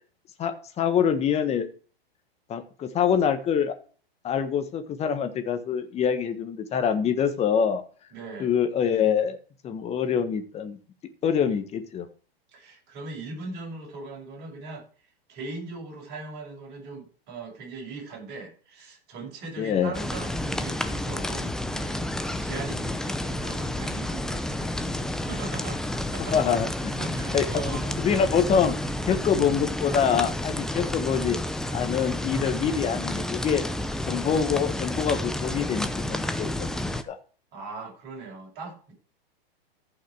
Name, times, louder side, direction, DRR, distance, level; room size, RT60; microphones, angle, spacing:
voice 1, 0.4-1.7 2.5-3.7 4.2-7.8 8.4-9.4 9.6-10.8 11.2-12.1 19.6-19.9 26.2-27.0 27.3-28.8 29.1-31.4 31.7-33.6 34.0-37.2, left 7 dB, 20° left, 8 dB, 1.4 m, -25 dB
voice 2, 8.1-8.5 12.5-14.9 15.3-26.4 27.0-27.9 37.5-38.9, right 3 dB, 35° right, -2 dB, 6.9 m, -39 dB
sound 1, 19.9-37.0, left 1 dB, ahead, 0.5 m, -30 dB
14.0 x 5.8 x 4.8 m, 0.40 s
hypercardioid pair, 135°, 31 cm